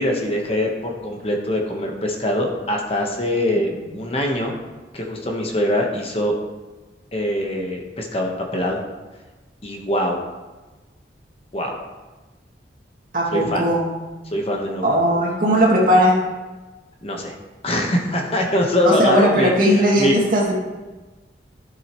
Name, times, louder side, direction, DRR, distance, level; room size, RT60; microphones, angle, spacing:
voice 1, 0.0-4.6 4.9-6.3 7.1-8.8 9.6-10.2 11.5-11.8 13.3-13.7 14.3-14.9 17.0-17.3 17.6-20.1, left 1 dB, 30° left, 1 dB, 1.1 m, -23 dB
voice 2, 13.1-13.9 14.8-16.2 18.8-20.6, equal, 45° right, -3 dB, 2.3 m, -17 dB
13.5 x 7.5 x 3.1 m, 1.2 s
head